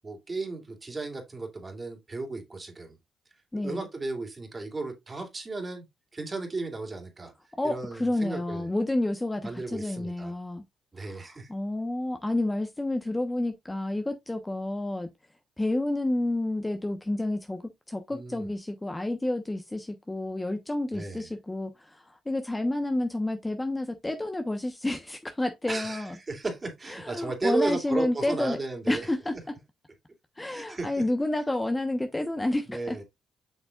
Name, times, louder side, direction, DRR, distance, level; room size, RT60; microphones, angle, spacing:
voice 1, 0.0-2.9 3.6-5.9 6.1-7.3 7.6-8.7 9.4-10.3 10.9-11.5 18.1-18.5 20.9-21.3 25.7-29.1 30.5-31.1 32.7-33.0, right 3 dB, 35° right, 3.0 m, -34 dB
voice 2, 3.5-3.8 7.6-10.6 11.0-15.1 15.6-17.6 17.9-26.2 26.9-28.6 28.9-29.4 30.4-33.0, left 1 dB, 15° left, 1.1 m, -30 dB
7.6 x 6.0 x 2.5 m
supercardioid pair, 65°, 0 cm